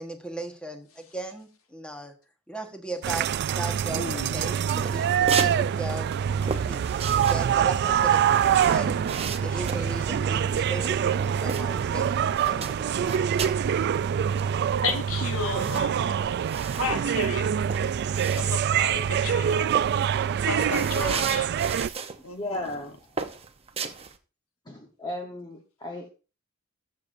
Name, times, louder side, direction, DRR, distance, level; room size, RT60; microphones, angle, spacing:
voice 1, 0.0-2.1 2.5-3.3 3.5-4.6 4.9-6.1 6.4-9.0 9.4-13.3, right 1 dB, 5° left, 4 dB, 1.3 m, -37 dB
sound 1, 3.0-21.9, right 8 dB, 50° right, 0.3 m, -25 dB
voice 2, 3.9-4.4 9.5-10.0 10.5-10.7 14.8-16.0 16.8-17.5 18.4-19.7 20.4-21.5 22.2-22.9, left 4 dB, 75° left, 6 dB, 1.3 m, -33 dB
sound 2, 4.8-5.6 5.9-12.0 12.3-13.7 14.0-14.1 14.3-18.8 19.1-19.4 19.7-22.2 22.5-22.8 23.2-24.2, right 5 dB, 30° right, 0.7 m, -35 dB
voice 3, 22.4-22.9 24.7-26.1, left 1 dB, 20° left, 1 dB, 1.0 m, -35 dB
13.5 x 6.4 x 2.6 m, 0.33 s
head